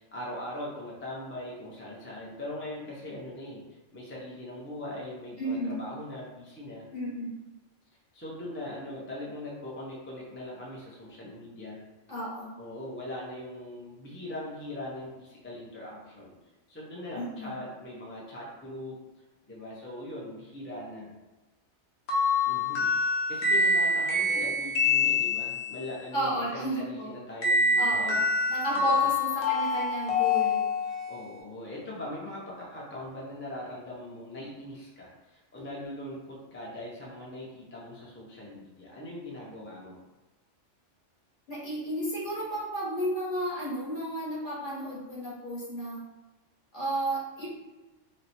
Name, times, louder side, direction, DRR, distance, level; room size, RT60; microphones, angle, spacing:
voice 1, 0.0-6.9 8.1-11.8 12.6-16.3 16.7-19.0 19.5-21.1 22.4-22.9 23.3-28.2 28.7-29.1 31.1-40.0, left 1 dB, 15° left, -5 dB, 0.4 m, -41 dB
voice 2, 5.4-5.8 6.9-7.4 12.1-12.6 17.2-17.6 26.1-27.2 27.8-28.2 28.5-30.7 41.5-46.0 46.7-47.5, right 1 dB, 45° left, -7 dB, 1.2 m, -33 dB
sound 1, 22.1-25.8 27.4-31.2, left 3 dB, 65° left, 1.1 m, -26 dB
3.0 x 2.1 x 4.0 m, 1.1 s
omnidirectional pair, 1.3 m